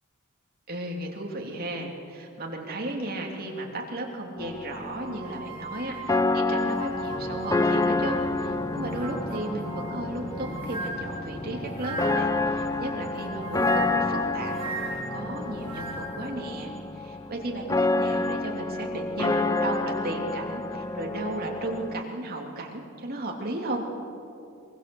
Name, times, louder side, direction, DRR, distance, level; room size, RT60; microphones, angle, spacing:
voice 1, 0.7-14.5 14.9-23.8, right 1 dB, 45° right, 0 dB, 2.9 m, -35 dB
sound 1, 4.4-22.0, left 3 dB, 15° left, 0.4 m, -29 dB
sound 2, 5.0-8.3 8.7-12.4 13.2-16.3, right 2 dB, 25° right, 5.7 m, -39 dB
sound 3, 6.7-15.9, equal, 85° left, 3.8 m, -41 dB
23.5 x 23.0 x 7.0 m, 2.6 s
head